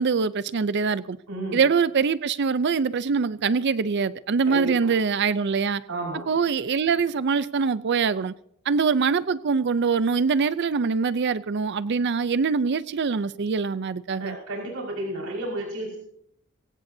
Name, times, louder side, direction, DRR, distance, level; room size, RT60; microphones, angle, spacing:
voice 1, 0.0-1.2 1.5-5.8 6.3-8.3 8.7-14.4, right 5 dB, 50° right, 15 dB, 0.5 m, -23 dB
voice 2, 1.3-1.6 4.4-4.9 5.9-6.3 14.2-16.0, right 2 dB, 90° right, -3 dB, 5.3 m, -32 dB
23.5 x 17.5 x 2.7 m, 0.69 s
head